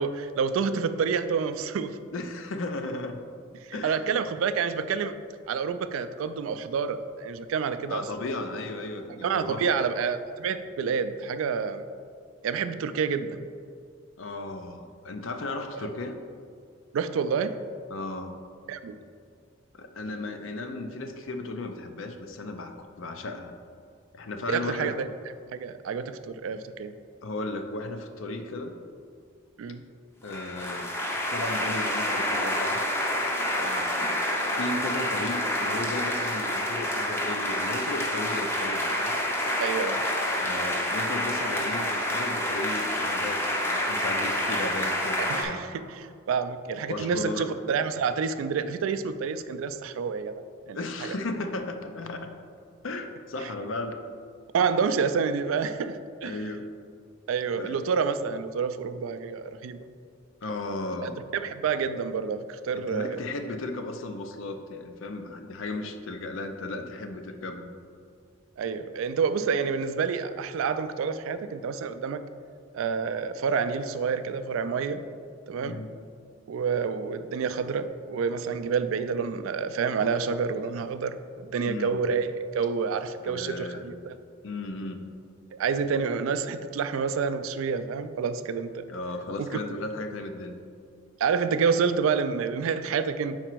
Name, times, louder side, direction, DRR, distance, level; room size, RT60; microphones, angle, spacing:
voice 1, 0.0-2.0 3.7-5.1 5.5-8.1 9.2-11.8 12.4-13.5 15.7-15.9 16.9-17.6 18.7-19.0 24.5-25.1 25.5-26.9 29.6-29.8 39.6-40.0 45.3-50.3 50.7-51.2 54.5-56.4 57.3-59.8 61.0-63.2 68.6-72.2 72.7-75.0 75.5-75.8 76.5-84.2 85.5-88.9 89.4-89.5 91.2-93.4, right 6 dB, 80° right, 11 dB, 0.3 m, -28 dB
voice 2, 2.1-3.2 3.7-4.1 7.9-9.6 14.2-16.2 17.9-18.4 19.7-23.5 24.1-25.0 27.2-28.8 30.2-30.9 31.3-32.8 33.5-34.2 34.5-39.2 40.3-45.6 46.9-47.5 50.7-52.3 52.8-54.0 56.2-56.7 57.6-57.8 60.4-61.2 62.7-67.7 75.6-75.9 81.7-82.0 83.2-83.9 84.4-85.1 88.9-90.6, left 2 dB, 70° left, 6 dB, 0.5 m, -35 dB
sound 1, 30.3-45.4, left 1 dB, 10° left, 0.5 m, -28 dB
4.9 x 4.3 x 4.5 m, 2.2 s
head